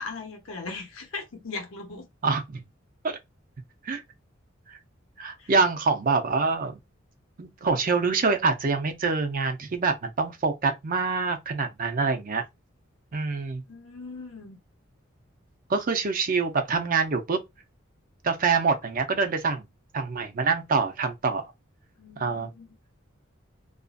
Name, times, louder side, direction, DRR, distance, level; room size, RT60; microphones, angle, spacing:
voice 1, 0.0-2.1 5.4-5.5 13.3-14.6 22.0-22.8, left 4 dB, 80° left, 0.7 m, -39 dB
voice 2, 2.2-2.6 3.0-3.2 3.8-4.0 4.7-4.8 5.2-6.8 7.4-12.4 13.1-13.6 15.7-17.4 18.2-19.7 19.9-21.5 22.2-22.5, right 4 dB, 45° right, 0.5 m, -25 dB
2.5 x 2.4 x 2.4 m
head